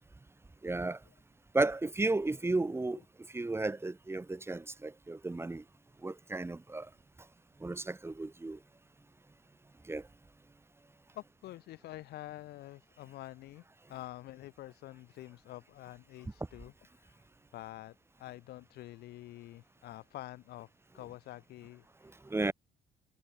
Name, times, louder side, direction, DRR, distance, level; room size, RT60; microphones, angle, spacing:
voice 1, 0.6-1.0 1.5-3.0 3.3-5.6 6.0-6.9 7.6-8.6 9.9-10.0 22.3-22.5, right 2 dB, 15° right, 3.8 m, -33 dB
voice 2, 11.1-13.6 13.9-17.2 17.5-20.7 20.9-22.2, left 16 dB, 75° left, 2.9 m, -47 dB
cardioid pair, 110°, 17 cm